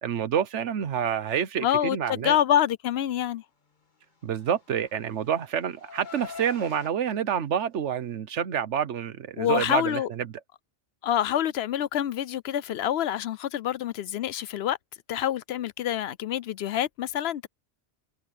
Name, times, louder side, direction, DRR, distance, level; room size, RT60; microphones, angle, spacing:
voice 1, 0.0-2.4 4.2-10.3, right 8 dB, 85° right, 1.2 m, -28 dB
voice 2, 1.6-3.4 9.4-10.1 11.0-14.8 15.1-17.5, left 10 dB, 70° left, 0.8 m, -26 dB
Car, 4.4-6.9, left 5 dB, 45° left, 1.6 m, -45 dB
omnidirectional pair, 1.2 m